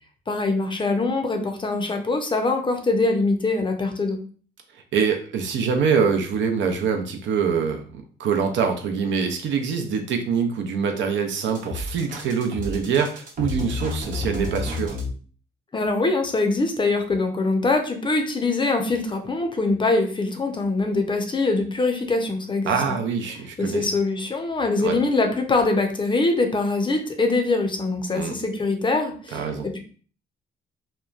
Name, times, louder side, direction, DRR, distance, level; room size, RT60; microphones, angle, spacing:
voice 1, 0.3-4.2 15.7-23.0 23.6-29.8, left 3 dB, 25° left, 4 dB, 0.5 m, -23 dB
voice 2, 4.9-15.0 22.7-23.9 24.8-24.9 28.1-28.3 29.3-29.7, right 6 dB, 70° right, 5 dB, 0.5 m, -24 dB
sound 1, 11.5-15.1, left 2 dB, 40° right, 0.8 m, -31 dB
2.9 x 2.1 x 2.3 m, 0.42 s
cardioid pair, 90°, 20 cm